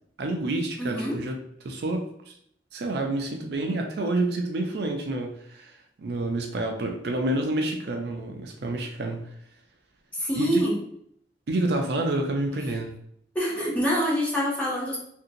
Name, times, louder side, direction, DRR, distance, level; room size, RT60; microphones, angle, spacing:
voice 1, 0.2-2.3 2.7-9.3 10.4-10.7 11.5-12.9, right 2 dB, 60° right, 3 dB, 0.4 m, -28 dB
voice 2, 0.8-1.2 10.1-10.8 13.3-15.0, equal, 10° left, -6 dB, 0.7 m, -25 dB
2.8 x 2.7 x 2.6 m, 0.70 s
head